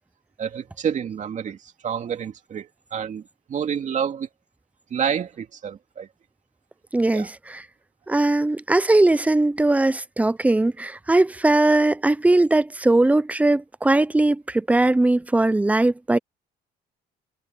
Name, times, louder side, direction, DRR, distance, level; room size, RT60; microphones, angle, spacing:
voice 1, 0.4-1.6 1.8-3.2 3.5-4.3 4.9-6.1 7.1-7.3, right 7 dB, 45° right, 2.6 m, -28 dB
voice 2, 6.9-7.6 8.1-16.2, right 2 dB, 10° right, 0.7 m, -20 dB
cardioid pair, 110°, 17 cm